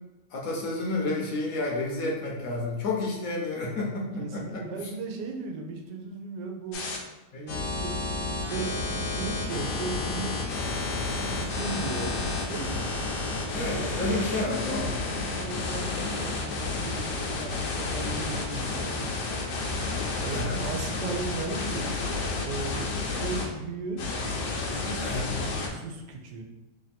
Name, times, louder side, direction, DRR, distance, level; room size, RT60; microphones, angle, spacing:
voice 1, 0.3-4.6 7.3-7.5 12.0-12.1 13.5-14.9 15.9-16.1 20.3-20.6 25.0-25.3, left 2 dB, 65° left, -3 dB, 1.1 m, -31 dB
voice 2, 4.2-6.8 7.4-10.4 11.0-12.1 12.5-12.9 13.5-19.5 20.2-21.9 22.4-24.0 24.7-25.1 25.4-26.4, right 4 dB, 85° right, 2 dB, 1.2 m, -36 dB
sound 1, 6.7-7.0 7.5-23.5 24.0-25.7, left 3 dB, 90° left, 1.3 m, -31 dB
3.3 x 2.6 x 4.1 m, 1.0 s
omnidirectional pair, 1.8 m